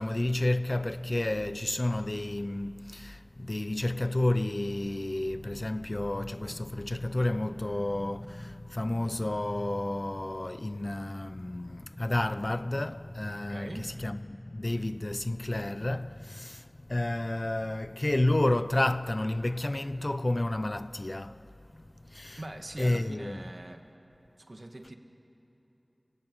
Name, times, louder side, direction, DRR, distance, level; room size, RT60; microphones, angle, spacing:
voice 1, 0.0-21.5 21.7-22.4 22.8-23.4, left 1 dB, 50° left, 0.6 m, -31 dB
voice 2, 13.5-14.0 22.4-23.9 24.5-25.0, right 1 dB, 60° right, 1.7 m, -42 dB
30.0 x 18.0 x 8.0 m
wide cardioid pair, 45°, 0 cm